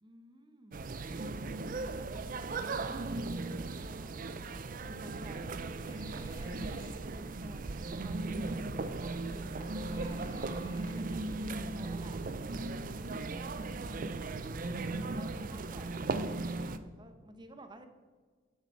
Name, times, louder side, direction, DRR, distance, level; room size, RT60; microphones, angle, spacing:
voice 1, 0.0-0.8 2.0-4.2 4.4-5.6 6.1-11.2 11.7-12.2 13.0-13.7 14.9-17.9, right 1 dB, 20° right, 7 dB, 0.8 m, -53 dB
sound 1, 0.7-16.8, right 3 dB, 40° right, 0.4 m, -37 dB
Telephone, 5.9-7.0 9.9-11.0, left 2 dB, 35° left, 1.3 m, -58 dB
11.5 x 6.7 x 4.5 m, 1.5 s
head